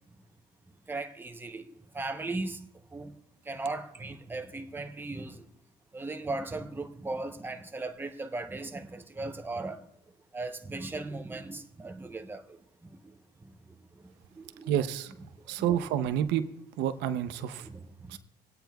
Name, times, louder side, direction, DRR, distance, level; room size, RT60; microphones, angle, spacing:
voice 1, 0.9-3.1 3.4-5.5 5.9-9.9 10.3-13.1 13.4-14.7 15.4-15.8 17.6-18.2, right 2 dB, 10° right, 0.8 m, -38 dB
voice 2, 14.7-15.1 15.5-16.4 16.8-17.7 18.1-18.2, right 10 dB, 85° right, 0.7 m, -29 dB
26.5 x 8.9 x 2.3 m
cardioid pair, 110°, 17 cm